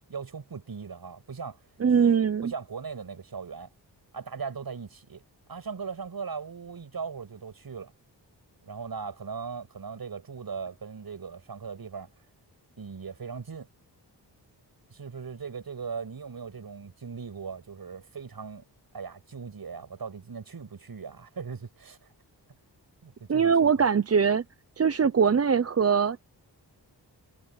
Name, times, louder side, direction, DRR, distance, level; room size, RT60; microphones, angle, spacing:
voice 1, 0.1-1.6 2.4-3.7 4.1-7.9 8.6-12.1 12.8-13.7 14.9-18.6 18.9-22.1 23.0-23.9, right 5 dB, 55° right, 6.9 m, -39 dB
voice 2, 1.8-2.5 23.3-24.4 24.8-26.2, right 6 dB, 35° right, 0.7 m, -22 dB
wide cardioid pair, 105°, 42 cm